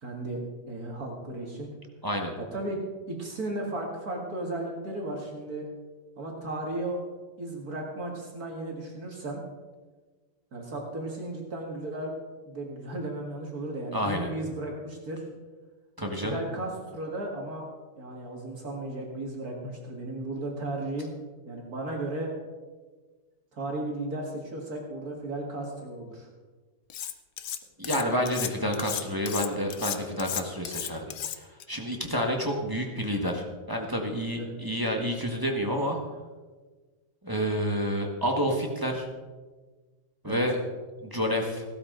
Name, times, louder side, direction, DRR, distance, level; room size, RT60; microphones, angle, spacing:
voice 1, 0.0-0.4 0.7-1.7 2.5-2.8 3.1-5.6 6.2-7.0 7.4-9.4 10.5-12.1 12.5-15.2 16.2-17.7 18.0-21.1 21.5-22.3 23.5-26.3 34.4-34.5 40.2-40.4, right 2 dB, 55° right, 0 dB, 2.3 m, -35 dB
voice 2, 2.0-2.3 13.9-14.3 16.0-16.4 27.8-31.1 31.3-36.0 37.2-39.1 40.2-40.6 41.0-41.6, equal, 15° right, 1 dB, 1.3 m, -29 dB
Cutlery silverware, 26.9-27.6 27.8-31.6, left 10 dB, 65° left, 1.0 m, -34 dB
16.5 x 12.0 x 3.8 m, 1.3 s
omnidirectional pair, 2.0 m